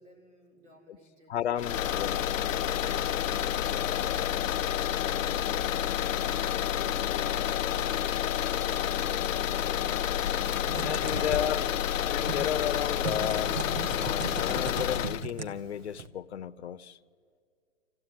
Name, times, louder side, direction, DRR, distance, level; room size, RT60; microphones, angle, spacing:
voice 1, 0.0-1.4 2.1-9.7 10.2-11.9, right 1 dB, 65° right, 6.3 m, -56 dB
voice 2, 1.3-2.2 7.2-7.3 10.8-11.6 12.0-17.0, left 9 dB, 60° left, 0.8 m, -33 dB
sound 1, 1.6-15.2, left 10 dB, 85° left, 0.5 m, -29 dB
Typing, 10.7-16.1, right 5 dB, 85° right, 1.9 m, -39 dB
27.5 x 15.5 x 9.6 m
hypercardioid pair, 145°, 38 cm